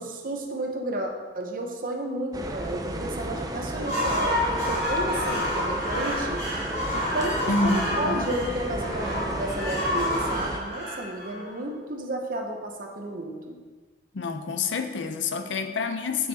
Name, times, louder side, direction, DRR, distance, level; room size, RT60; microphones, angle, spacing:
voice 1, 0.0-6.4 6.9-13.6, right 1 dB, 50° right, 2 dB, 0.9 m, -32 dB
sound 1, 2.3-10.6, right 1 dB, 20° right, 0.5 m, -33 dB
sound 2, 3.7-11.8, left 1 dB, 35° left, 2.2 m, -29 dB
voice 2, 7.5-8.2 14.1-16.3, left 3 dB, 75° left, 8 dB, 0.6 m, -28 dB
6.5 x 6.4 x 4.1 m, 1.4 s
head